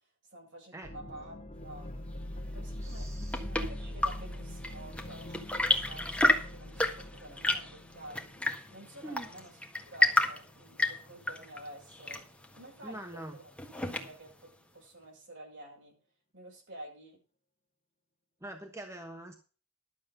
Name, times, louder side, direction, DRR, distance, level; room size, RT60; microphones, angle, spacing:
voice 1, 0.3-1.3 1.6-1.9 2.4-8.3 8.7-9.6 9.9-12.2 12.5-13.5 13.9-15.9 16.3-17.2, right 1 dB, 60° right, -1 dB, 7.5 m, -50 dB
sound 1, 0.8-10.1 10.4-10.5, left 1 dB, 30° left, 1.8 m, -42 dB
voice 2, 2.8-3.6 9.0-9.3 12.8-13.4 18.4-19.4, right 1 dB, 15° right, 4 dB, 1.2 m, -44 dB
Chirp tweet / Engine / Tap, 2.9-14.4, left 1 dB, 5° left, 1.6 m, -32 dB
12.0 x 7.5 x 5.4 m, 0.37 s
head